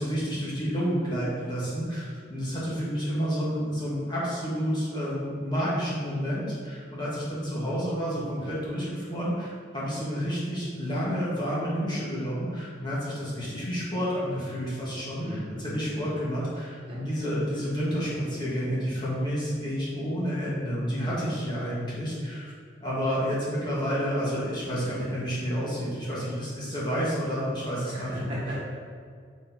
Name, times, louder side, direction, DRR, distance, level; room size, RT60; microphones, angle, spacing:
voice 1, 0.0-22.5 22.8-28.3, equal, 25° left, -8 dB, 1.5 m, -30 dB
voice 2, 15.2-16.1 16.9-17.3 27.8-28.6, equal, 30° right, -7 dB, 1.5 m, -37 dB
6.9 x 4.2 x 4.0 m, 2.1 s
head